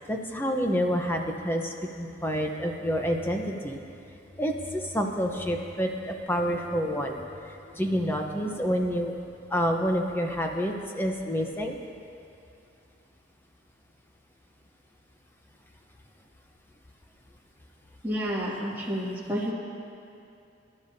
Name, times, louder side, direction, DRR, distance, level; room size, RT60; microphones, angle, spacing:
voice 1, 0.1-3.8 4.4-9.1 9.5-11.8, equal, 10° left, 2 dB, 0.9 m, -28 dB
voice 2, 18.0-19.5, equal, 10° right, -7 dB, 2.3 m, -30 dB
24.0 x 12.0 x 2.8 m, 2.6 s
head